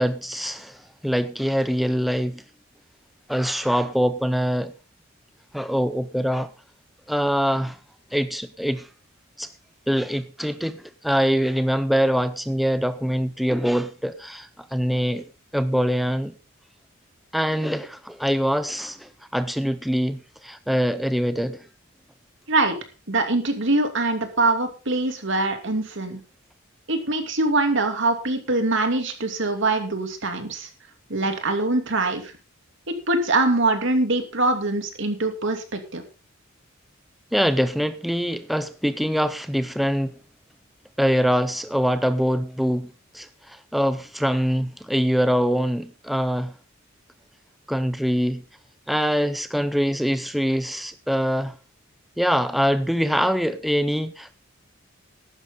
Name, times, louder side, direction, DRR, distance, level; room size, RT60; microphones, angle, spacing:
voice 1, 0.0-2.4 3.3-4.7 5.5-6.5 7.1-7.8 8.1-8.9 9.4-9.5 9.9-15.2 15.5-16.3 17.3-21.7 37.3-40.2 41.0-46.5 47.7-48.4 48.9-51.6 52.2-54.3, equal, ahead, 0.5 m, -24 dB
voice 2, 23.1-26.2 26.9-30.7 31.1-32.3 32.9-36.0, right 2 dB, 65° right, 2.8 m, -23 dB
14.5 x 11.5 x 3.8 m
head